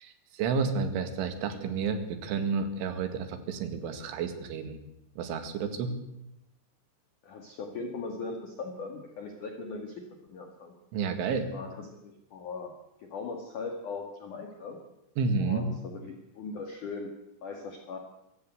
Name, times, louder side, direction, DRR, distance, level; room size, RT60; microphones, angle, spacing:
voice 1, 0.0-4.8 5.2-5.9 10.9-11.5 15.2-15.7, right 5 dB, 80° right, 8 dB, 4.5 m, -31 dB
voice 2, 7.2-10.0 10.3-10.7 11.5-12.7 13.0-14.8 15.4-17.1 17.4-18.0, left 4 dB, 50° left, 3 dB, 3.0 m, -39 dB
24.5 x 16.0 x 8.2 m, 0.85 s
omnidirectional pair, 5.5 m